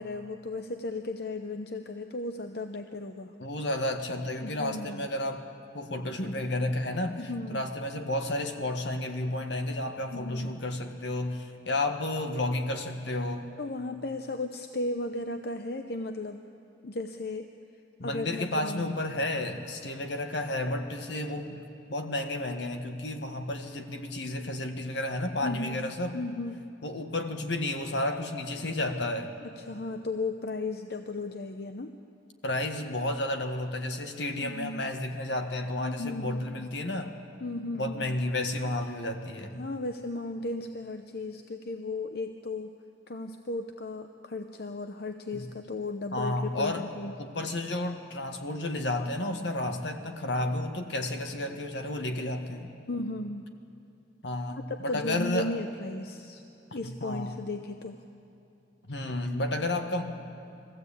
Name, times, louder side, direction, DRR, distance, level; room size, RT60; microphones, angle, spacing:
voice 1, 0.0-3.3 4.4-5.1 7.2-7.6 10.1-10.6 13.6-16.4 16.8-17.5 18.0-19.0 25.4-25.8 26.1-26.7 29.4-32.0 34.4-34.9 35.8-36.7 37.4-38.2 39.6-42.7 43.1-47.1 52.9-53.5 54.7-56.4 56.7-58.0, left 2 dB, 60° left, 7 dB, 0.7 m, -35 dB
voice 2, 3.4-5.4 5.7-13.5 18.0-21.6 21.9-26.2 26.8-29.3 32.4-37.1 37.7-39.7 45.3-45.5 46.1-46.9 47.2-52.8 54.2-55.5 56.8-57.4 58.9-60.0, left 1 dB, 75° left, 6 dB, 1.5 m, -32 dB
22.0 x 15.0 x 8.5 m, 2.7 s
head